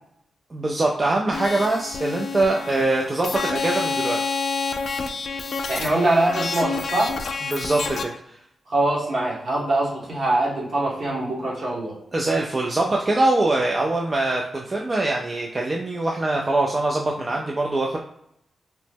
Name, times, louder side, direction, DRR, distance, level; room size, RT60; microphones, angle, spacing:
voice 1, 0.5-4.4 7.5-8.4 12.1-18.0, right 2 dB, 40° right, -1 dB, 0.4 m, -23 dB
sound 1, 1.3-8.0, left 4 dB, 65° left, 0.4 m, -28 dB
voice 2, 5.7-7.1 8.7-12.0, right 2 dB, 65° right, -4 dB, 1.3 m, -23 dB
3.0 x 2.1 x 3.4 m, 0.74 s
supercardioid pair, 45°, 0 cm